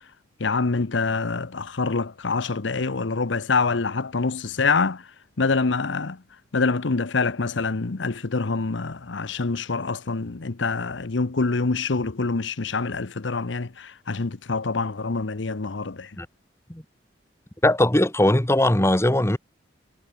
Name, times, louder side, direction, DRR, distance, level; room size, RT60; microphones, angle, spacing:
voice 1, 0.4-5.0 5.4-6.2 6.5-16.1, left 4 dB, 85° left, 0.9 m, -25 dB
voice 2, 17.6-19.4, left 1 dB, 15° left, 1.3 m, -19 dB
head